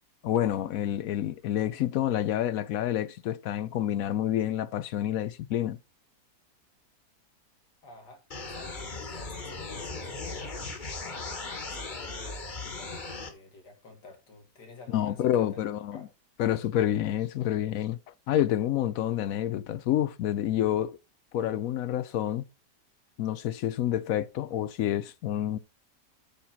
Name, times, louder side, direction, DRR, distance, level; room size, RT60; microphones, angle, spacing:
voice 1, 0.2-5.8 14.9-16.0 16.4-18.0 18.3-21.0 21.3-22.4 23.2-25.6, left 11 dB, 70° left, 0.9 m, -28 dB
voice 2, 7.8-10.8 11.5-15.6 15.9-16.1, left 3 dB, 85° left, 2.5 m, -51 dB
sound 1, 8.3-13.3, left 3 dB, 30° left, 1.5 m, -38 dB
8.6 x 4.3 x 5.8 m
omnidirectional pair, 1.8 m